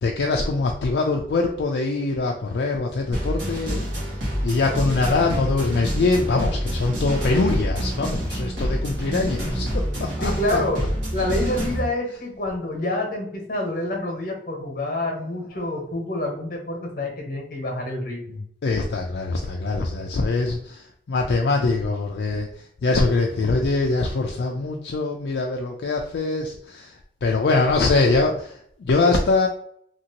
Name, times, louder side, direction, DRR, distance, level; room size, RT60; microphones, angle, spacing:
voice 1, 0.0-10.6 18.6-29.5, left 3 dB, 70° left, 1 dB, 0.3 m, -23 dB
sound 1, 3.1-11.9, equal, 85° right, 1.3 m, -27 dB
voice 2, 10.2-10.8 11.1-18.4, left 1 dB, 50° left, 0 dB, 1.0 m, -27 dB
2.9 x 2.7 x 2.8 m, 0.65 s
head